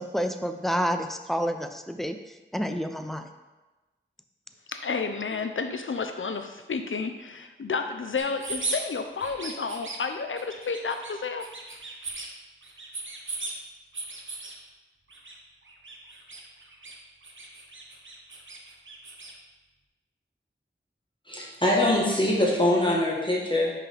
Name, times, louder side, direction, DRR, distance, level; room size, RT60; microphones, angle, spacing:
voice 1, 0.0-2.2 2.5-3.3, equal, ahead, 7 dB, 0.5 m, -29 dB
voice 2, 4.7-11.5, left 4 dB, 90° left, 7 dB, 0.5 m, -31 dB
sound 1, 8.2-8.8 9.2-10.0 10.4-11.1 11.4-12.3 12.6-13.5 13.9-14.5 15.1-15.3 15.6-17.0 17.2-19.3, right 3 dB, 85° right, 0.9 m, -37 dB
voice 3, 21.3-23.7, left 1 dB, 25° left, -4 dB, 1.2 m, -23 dB
5.6 x 5.5 x 3.3 m, 1.1 s
wide cardioid pair, 45°, 20 cm